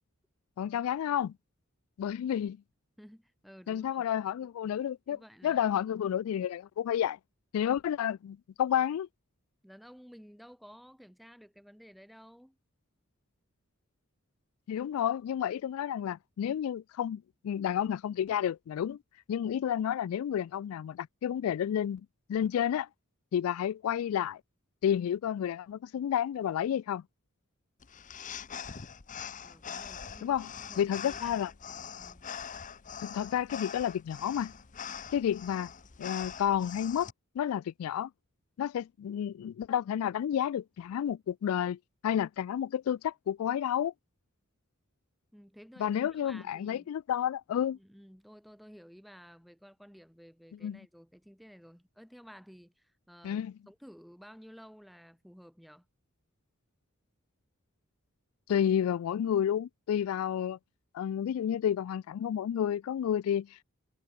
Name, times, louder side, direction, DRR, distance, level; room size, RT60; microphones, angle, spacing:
voice 1, 0.6-1.3 2.0-2.6 3.7-7.2 7.5-9.1 14.7-19.0 19.3-22.0 22.3-22.9 23.3-24.4 24.8-27.0 30.2-30.5 30.8-31.5 33.0-34.5 35.1-35.7 36.0-37.1 37.4-38.1 38.6-43.9 45.8-47.8 50.6-50.8 53.2-53.5 58.5-60.6 60.9-63.6, left 9 dB, 80° left, 0.3 m, -31 dB
voice 2, 3.0-4.1 5.1-5.6 9.6-12.6 29.4-31.4 32.0-32.3 45.3-46.9 47.7-55.9, equal, ahead, 6.5 m, -54 dB
sound 1, 27.8-37.1, left 7 dB, 40° left, 0.8 m, -43 dB
head